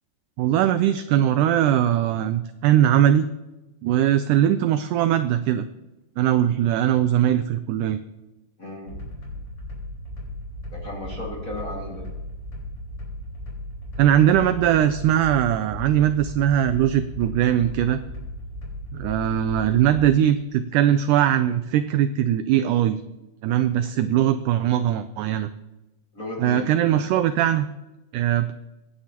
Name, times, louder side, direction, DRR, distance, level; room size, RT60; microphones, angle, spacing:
voice 1, 0.4-3.3 3.8-5.7 6.2-8.0 14.0-18.0 18.9-23.0 23.4-25.5 26.4-27.7 28.1-28.5, right 11 dB, 90° right, 11 dB, 1.8 m, -20 dB
voice 2, 8.6-8.9 10.7-12.0 26.1-26.7, left 1 dB, 30° left, -3 dB, 1.8 m, -34 dB
sound 1, 8.9-20.1, left 1 dB, 45° left, 5.7 m, -36 dB
24.5 x 9.6 x 2.9 m, 1.0 s
omnidirectional pair, 4.2 m